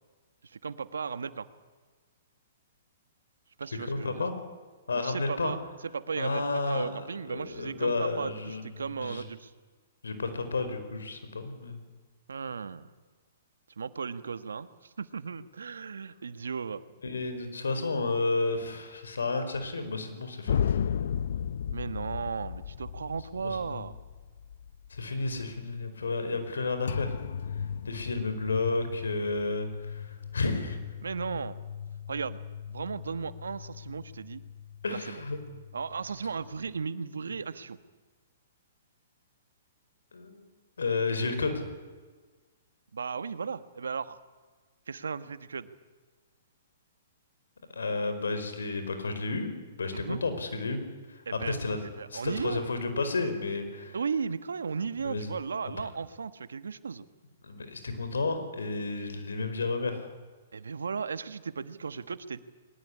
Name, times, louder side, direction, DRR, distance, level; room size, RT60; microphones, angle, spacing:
voice 1, 0.4-1.5 3.6-4.2 4.9-5.6 5.9-9.5 12.3-12.9 13.8-16.8 21.7-23.9 31.0-31.6 32.1-32.4 32.7-34.4 34.9-35.2 35.7-37.8 42.9-44.2 44.9-45.7 49.9-50.2 51.2-51.6 51.8-52.6 53.9-57.0 60.5-62.4, right 5 dB, 85° right, 13 dB, 1.4 m, -35 dB
voice 2, 3.8-4.3 4.9-5.5 6.2-6.9 7.3-9.2 10.0-11.8 17.0-20.7 23.4-23.8 24.9-27.1 27.8-30.8 34.8-35.4 40.1-40.5 40.8-41.6 47.7-50.8 51.1-51.8 52.1-54.0 55.0-55.3 57.4-60.1, left 3 dB, 85° left, 9 dB, 4.9 m, -32 dB
sound 1, 20.5-25.6 26.9-36.9, left 8 dB, 70° left, 0.8 m, -36 dB
22.0 x 20.0 x 9.9 m, 1.4 s
hypercardioid pair, 130°, 0 cm